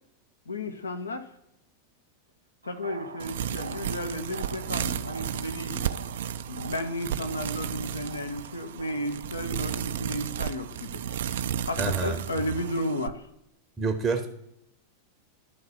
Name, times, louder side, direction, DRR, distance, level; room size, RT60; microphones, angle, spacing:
voice 1, 0.5-1.3 2.6-5.9 6.5-11.0 11.7-13.2, left 1 dB, 75° left, 7 dB, 0.8 m, -33 dB
sound 1, 2.6-12.8, right 5 dB, 75° right, 1.0 m, -47 dB
sound 2, 3.2-13.1, right 9 dB, 60° right, 0.3 m, -33 dB
voice 2, 11.8-12.2 13.8-14.3, right 4 dB, 15° right, 6 dB, 0.7 m, -27 dB
11.5 x 3.8 x 5.9 m, 0.81 s
figure-of-eight pair, 90°, 0 cm